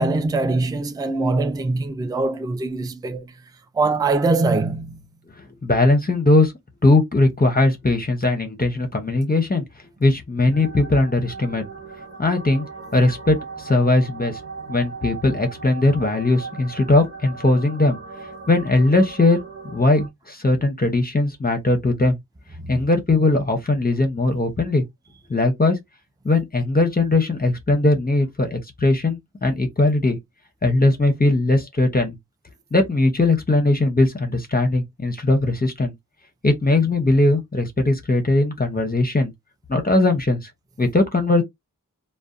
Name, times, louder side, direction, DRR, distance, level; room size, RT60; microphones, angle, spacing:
voice 1, 0.0-3.3 3.7-5.0 22.6-22.7, right 3 dB, 10° right, 0.4 m, -22 dB
voice 2, 5.4-6.5 6.8-9.6 10.0-11.6 12.2-12.7 12.9-14.4 14.7-18.0 18.5-19.4 19.7-22.2 22.7-24.8 25.3-25.8 26.2-30.2 30.6-32.2 32.7-35.9 36.4-39.3 39.7-40.5 40.8-41.4, left 2 dB, 25° left, 0.7 m, -19 dB
sound 1, 10.5-20.1, right 4 dB, 40° right, 1.1 m, -38 dB
2.5 x 2.1 x 2.4 m
wide cardioid pair, 45°, 34 cm